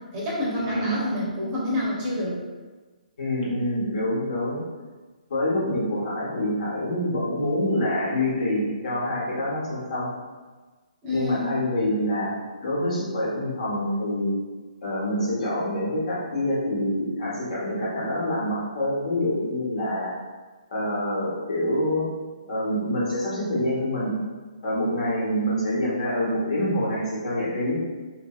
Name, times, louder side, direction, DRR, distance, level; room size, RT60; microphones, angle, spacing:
voice 1, 0.1-2.4 11.0-11.6, left 1 dB, 25° right, -6 dB, 0.7 m, -28 dB
voice 2, 0.7-1.0 3.2-4.6 5.3-10.1 11.1-12.3 12.6-14.3 14.8-20.1 20.7-22.0 22.5-24.1 24.6-27.8, left 1 dB, 55° left, -7 dB, 1.2 m, -26 dB
3.0 x 2.6 x 2.3 m, 1.3 s
hypercardioid pair, 150°, 4 cm